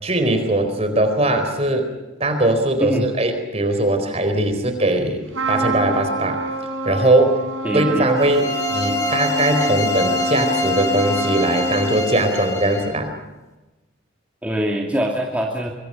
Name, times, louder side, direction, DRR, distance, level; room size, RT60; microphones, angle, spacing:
voice 1, 0.0-1.9 2.2-6.4 6.8-7.4 7.7-13.1, right 1 dB, 30° right, 7 dB, 4.4 m, -20 dB
Trumpet, 5.3-12.2, right 3 dB, 85° right, 5.6 m, -26 dB
voice 2, 7.6-8.1 14.4-15.7, equal, 5° right, -1 dB, 2.6 m, -23 dB
sound 1, 8.2-13.0, left 4 dB, 15° left, 3.1 m, -25 dB
25.0 x 24.0 x 5.8 m, 1.1 s
head